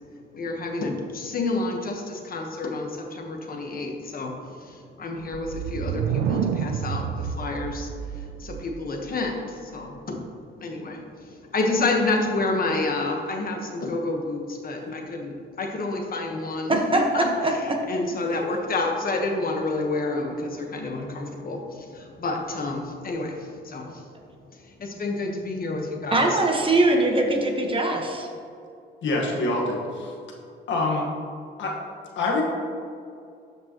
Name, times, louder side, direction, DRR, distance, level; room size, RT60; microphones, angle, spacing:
voice 1, 0.3-4.3 4.6-7.9 8.2-10.2 10.6-24.0 24.6-26.4, left 2 dB, 45° left, 2 dB, 1.2 m, -29 dB
sound 1, 5.2-9.0, right 8 dB, 90° right, 0.4 m, -29 dB
voice 2, 16.7-17.0 17.4-17.8 26.1-28.3, right 2 dB, 25° right, 1 dB, 1.2 m, -22 dB
voice 3, 29.0-30.1 30.7-31.1 31.6-31.7 32.2-32.4, left 2 dB, 70° left, -1 dB, 1.5 m, -25 dB
12.0 x 5.3 x 3.0 m, 2.4 s
cardioid pair, 90°, 20 cm